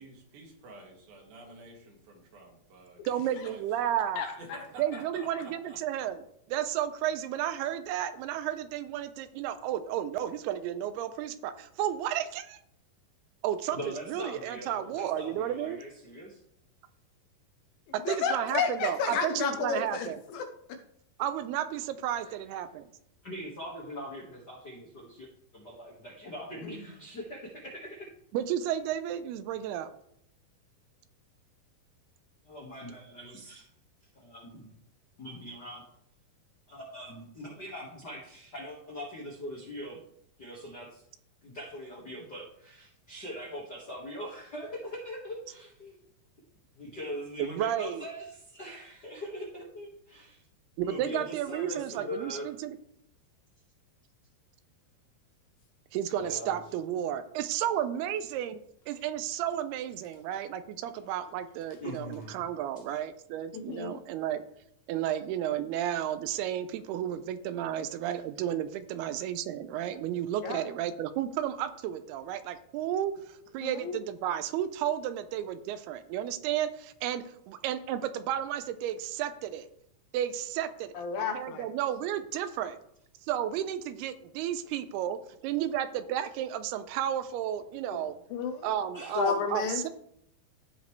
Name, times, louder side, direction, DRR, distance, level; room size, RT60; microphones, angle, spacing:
voice 1, 0.0-3.9 4.4-6.0, right 2 dB, 70° right, 0 dB, 3.5 m, -50 dB
voice 2, 3.1-4.2 4.8-6.2 6.5-12.6 13.4-15.8 17.9-20.2 21.2-22.9 28.3-29.9 47.4-48.0 50.8-52.8 55.9-58.6 58.9-64.4 64.9-79.7 80.1-81.0 81.3-82.8 83.3-88.1 88.6-89.9, right 11 dB, 85° right, 11 dB, 2.6 m, -32 dB
voice 3, 4.2-4.6 18.1-20.5 26.7-26.8 63.5-64.0 70.4-70.6 73.6-74.0 81.0-81.7 88.3-88.7 89.2-89.9, left 6 dB, 75° left, 6 dB, 2.4 m, -31 dB
voice 4, 13.7-16.4 22.2-22.4 23.2-28.1 32.4-33.6 34.1-34.7 35.2-35.8 36.7-40.0 40.4-41.0 41.4-46.0 46.8-50.4 50.8-52.4 56.2-56.6 61.8-62.4 88.9-89.2, equal, 55° left, -4 dB, 1.1 m, -42 dB
15.5 x 5.2 x 3.2 m, 0.70 s
omnidirectional pair, 4.6 m